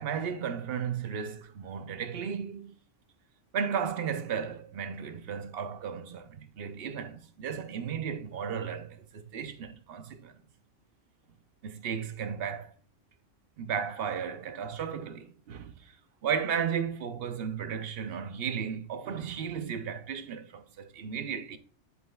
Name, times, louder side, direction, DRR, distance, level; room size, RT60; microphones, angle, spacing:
voice 1, 0.0-2.7 3.5-10.4 11.6-12.7 13.6-16.0 16.2-21.6, right 7 dB, 55° right, 0.9 m, -34 dB
8.1 x 7.9 x 2.3 m
omnidirectional pair, 1.3 m